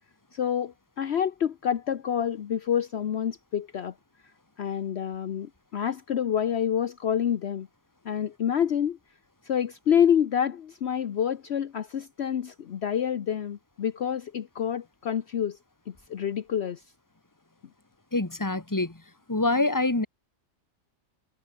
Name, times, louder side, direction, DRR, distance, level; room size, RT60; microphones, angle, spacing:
voice 1, 0.3-3.9 4.6-7.7 8.0-9.0 9.4-15.6 15.9-16.8, left 9 dB, 60° left, 1.1 m, -27 dB
voice 2, 18.1-19.0 19.3-20.1, left 2 dB, 15° left, 1.8 m, -25 dB
omnidirectional pair, 1.3 m